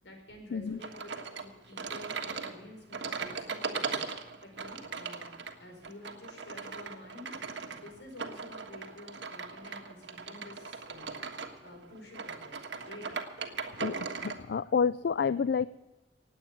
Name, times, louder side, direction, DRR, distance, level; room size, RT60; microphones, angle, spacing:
voice 1, 0.0-5.3 5.6-12.6 12.8-13.1 13.5-13.6 14.5-14.6, left 1 dB, 80° left, 3 dB, 4.7 m, -50 dB
sound 1, 0.8-14.4, right 5 dB, 75° right, 1.5 m, -39 dB
voice 2, 14.2-15.7, left 6 dB, 60° left, 16 dB, 0.4 m, -29 dB
18.0 x 8.7 x 6.9 m, 1.0 s
head